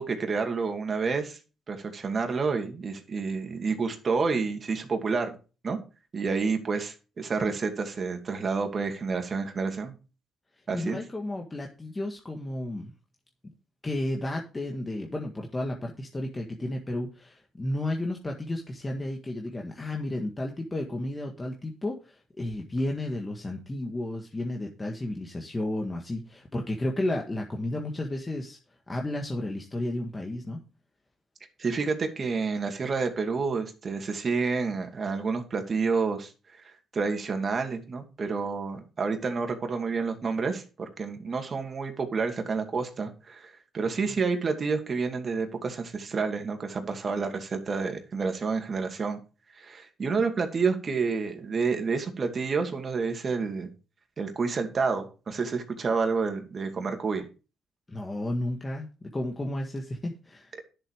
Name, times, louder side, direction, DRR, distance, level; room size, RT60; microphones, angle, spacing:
voice 1, 0.0-1.4 1.7-5.4 5.6-5.8 6.1-9.9 10.7-11.0 31.6-49.2 49.6-53.7 54.2-57.3, right 4 dB, 40° right, 5 dB, 2.4 m, -29 dB
voice 2, 10.7-12.9 13.8-28.6 28.9-30.6 57.9-60.5, left 1 dB, 20° left, 1 dB, 1.6 m, -32 dB
10.5 x 7.3 x 4.8 m, 0.33 s
cardioid pair, 90°, 0 cm